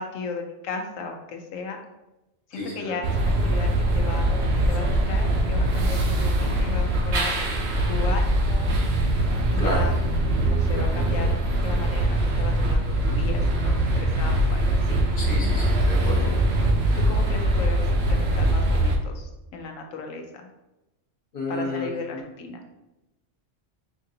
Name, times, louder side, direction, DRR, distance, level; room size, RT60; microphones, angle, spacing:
voice 1, 0.0-1.8 2.5-7.4 7.9-8.7 9.5-10.0 10.4-11.3 11.6-15.0 15.9-16.4 17.0-20.5 21.5-22.6, left 4 dB, 85° left, 4 dB, 1.0 m, -36 dB
voice 2, 2.5-2.9 9.6-9.8 15.2-16.5 21.3-22.2, left 2 dB, 50° left, -2 dB, 0.9 m, -31 dB
sound 1, 3.0-19.0, right 1 dB, 60° right, 0.8 m, -22 dB
4.9 x 2.5 x 2.7 m, 0.96 s
omnidirectional pair, 1.3 m